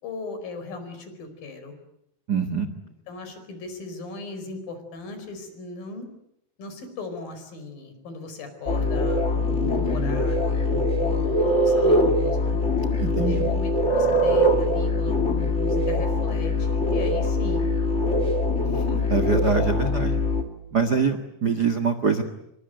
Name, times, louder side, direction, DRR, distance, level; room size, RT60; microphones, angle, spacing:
voice 1, 0.0-1.7 3.1-6.1 6.6-10.6 10.9-12.6 13.2-17.6 18.6-19.0, left 3 dB, 60° left, 8 dB, 6.5 m, -37 dB
voice 2, 2.3-2.7 13.0-13.5 19.1-20.1 20.7-22.2, right 5 dB, 65° right, 10 dB, 0.9 m, -24 dB
sound 1, 8.7-20.4, left 1 dB, 20° left, 2.2 m, -22 dB
27.5 x 23.5 x 9.1 m, 0.79 s
omnidirectional pair, 4.7 m